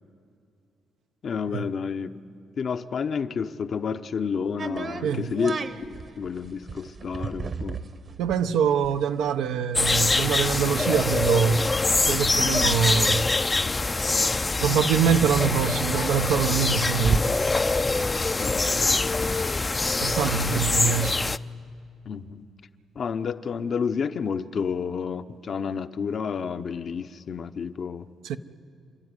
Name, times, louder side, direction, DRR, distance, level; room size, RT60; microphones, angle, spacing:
voice 1, 1.2-2.1 2.6-5.6 6.2-7.8 18.4-19.2 20.5-20.6 22.1-22.5 23.0-28.1, left 6 dB, 50° left, 0.8 m, -30 dB
sound 1, 4.6-14.1 14.4-14.5 14.7-18.6, right 4 dB, 45° right, 1.1 m, -35 dB
voice 2, 5.0-5.4 8.2-11.7 12.0-13.3 14.6-17.3 20.0-21.2 28.2-28.4, right 7 dB, 85° right, 0.8 m, -24 dB
sound 2, 9.7-21.4, left 3 dB, 25° left, 0.5 m, -24 dB
29.5 x 12.5 x 9.7 m
cardioid pair, 90°, 0 cm